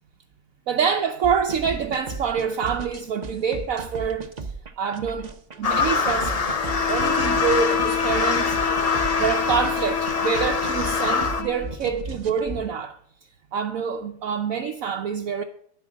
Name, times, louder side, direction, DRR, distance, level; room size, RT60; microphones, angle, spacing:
voice 1, 0.7-4.3 4.8-5.3 5.6-6.4 6.9-8.6 9.2-13.0 13.5-15.4, right 6 dB, 60° right, 1.1 m, -26 dB
sound 1, 1.2-12.6, right 4 dB, 35° right, 0.7 m, -35 dB
sound 2, 5.6-11.4, left 4 dB, 45° left, 0.4 m, -24 dB
Bowed string instrument, 6.5-11.7, left 7 dB, 85° left, 2.1 m, -28 dB
10.5 x 8.1 x 6.1 m
omnidirectional pair, 1.8 m